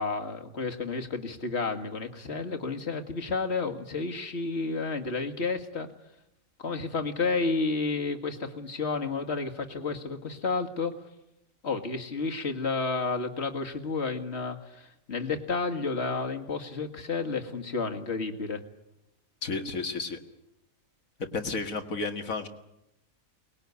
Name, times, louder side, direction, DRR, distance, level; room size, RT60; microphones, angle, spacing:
voice 1, 0.0-5.9 6.6-10.9 11.6-18.6, left 4 dB, 50° left, 5 dB, 2.1 m, -31 dB
voice 2, 19.4-20.2 21.2-22.5, left 3 dB, 75° left, 7 dB, 2.2 m, -32 dB
23.5 x 20.0 x 9.6 m, 0.86 s
omnidirectional pair, 1.4 m